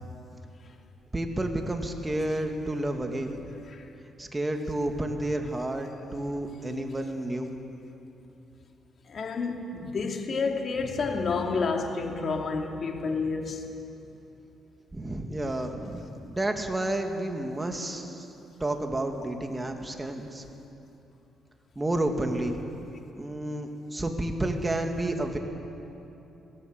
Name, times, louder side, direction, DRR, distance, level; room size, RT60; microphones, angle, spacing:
voice 1, 1.1-3.5 4.2-7.5 14.9-18.3 18.6-20.4 21.8-22.6 23.1-25.4, right 1 dB, 15° right, 4 dB, 2.3 m, -30 dB
voice 2, 9.1-13.6, left 4 dB, 50° left, 3 dB, 2.5 m, -29 dB
22.0 x 17.0 x 8.0 m, 2.9 s
cardioid pair, 90°, 0 cm